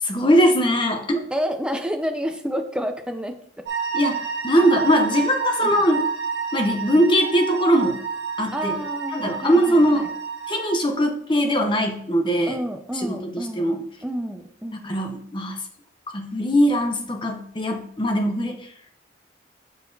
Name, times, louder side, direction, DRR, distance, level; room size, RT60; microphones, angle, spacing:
voice 1, 0.0-1.2 3.9-6.0 6.5-8.0 8.4-8.8 9.1-10.1 10.5-12.6 13.0-13.8 14.7-15.6 16.1-18.7, equal, 25° left, 5 dB, 0.7 m, -21 dB
voice 2, 1.3-3.4 4.6-4.7 5.6-5.8 8.5-10.1 12.5-15.0, equal, 5° right, 6 dB, 0.5 m, -30 dB
sound 1, 3.6-10.8, right 6 dB, 80° right, 1.5 m, -29 dB
6.3 x 5.6 x 2.7 m, 0.65 s
head